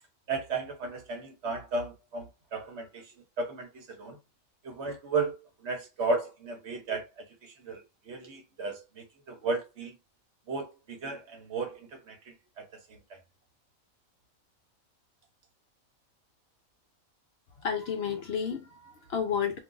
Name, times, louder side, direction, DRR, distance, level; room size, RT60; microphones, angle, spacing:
voice 1, 0.3-4.2 4.6-5.4 5.6-9.9 10.5-12.7 13.1-13.2, right 3 dB, 60° right, 0.9 m, -34 dB
voice 2, 17.6-19.6, left 7 dB, 60° left, 0.7 m, -31 dB
2.4 x 2.3 x 3.8 m
omnidirectional pair, 1.4 m